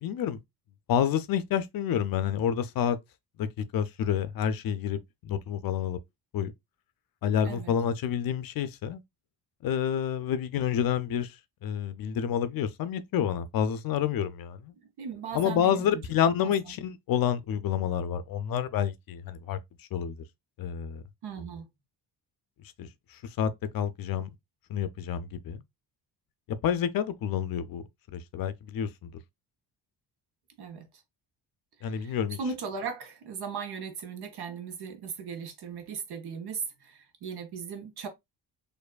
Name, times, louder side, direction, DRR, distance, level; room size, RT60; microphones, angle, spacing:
voice 1, 0.0-0.4 0.9-3.0 3.4-6.0 6.3-6.5 7.2-9.0 9.6-11.4 11.6-14.7 15.3-20.2 20.6-21.0 22.8-24.3 24.7-25.6 26.5-27.8 28.1-29.1 31.8-32.4, left 9 dB, 55° left, 0.5 m, -29 dB
voice 2, 14.8-16.5 21.2-21.7 30.6-30.9 31.8-38.1, right 5 dB, 65° right, 1.0 m, -38 dB
4.5 x 2.6 x 2.3 m
cardioid pair, 155°, 41 cm